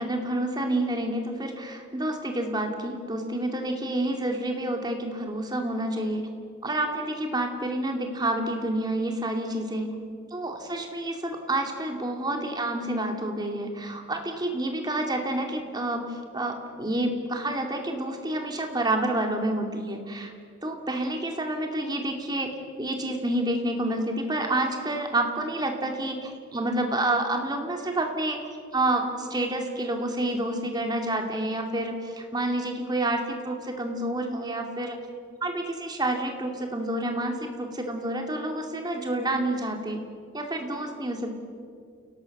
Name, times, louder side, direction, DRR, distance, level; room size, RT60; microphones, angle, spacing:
voice 1, 0.0-6.3 6.6-9.9 10.3-20.3 20.6-28.4 28.7-35.0 35.4-40.0 40.3-41.3, right 1 dB, 20° right, 3 dB, 2.4 m, -29 dB
29.5 x 18.0 x 6.6 m, 2.2 s
head